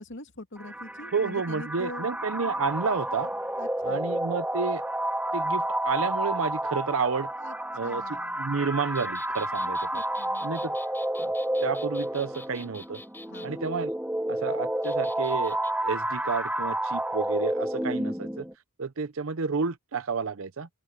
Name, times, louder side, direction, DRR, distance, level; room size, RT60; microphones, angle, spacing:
voice 1, 0.0-2.1 3.6-4.1 7.4-7.5 7.8-8.4 9.6-10.5 13.3-13.7, left 2 dB, 60° left, 2.7 m, -43 dB
sound 1, 0.6-18.5, right 1 dB, 5° right, 2.5 m, -30 dB
voice 2, 1.1-3.3 3.8-4.8 5.3-7.3 7.7-10.0 10.4-10.7 11.2-11.3 11.6-13.0 13.4-13.9 14.3-18.4 18.8-20.7, right 5 dB, 70° right, 0.7 m, -31 dB
sound 2, 8.9-13.5 14.8-15.7, left 2 dB, 10° left, 4.1 m, -48 dB
open air
head